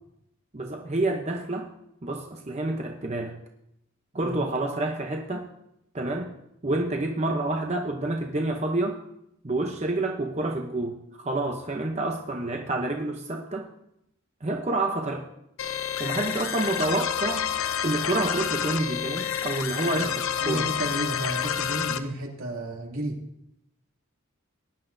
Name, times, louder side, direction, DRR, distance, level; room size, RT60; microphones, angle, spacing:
voice 1, 0.5-1.7 2.0-3.4 4.1-5.4 5.9-6.3 6.6-9.0 9.4-13.6 14.4-15.2 16.0-17.5 17.8-20.6, right 2 dB, 30° right, 2 dB, 0.7 m, -28 dB
sound 1, 15.6-22.0, left 8 dB, 70° left, 0.7 m, -29 dB
voice 2, 20.4-23.2, right 1 dB, 75° right, -1 dB, 2.6 m, -32 dB
18.5 x 11.0 x 2.6 m, 0.80 s
head